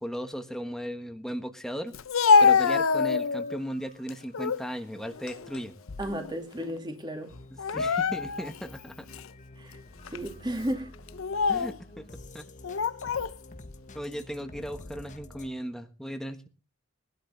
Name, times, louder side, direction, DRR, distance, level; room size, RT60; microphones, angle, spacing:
voice 1, 0.0-1.9 2.4-5.7 7.7-9.0 11.5-12.1 12.3-12.5 13.9-16.5, equal, ahead, 6 dB, 1.4 m, -36 dB
Speech, 1.9-3.6 4.1-4.7 5.1-6.3 6.6-6.8 7.6-8.6 9.1-9.3 10.1-10.3 11.1-11.8 12.6-13.3, left 5 dB, 70° left, 0.6 m, -25 dB
sound 1, 2.5-15.5, left 2 dB, 35° left, 1.1 m, -50 dB
voice 2, 6.0-7.3 9.6-9.8 10.1-10.9, equal, 20° right, 4 dB, 2.3 m, -33 dB
20.0 x 12.0 x 3.4 m, 0.33 s
head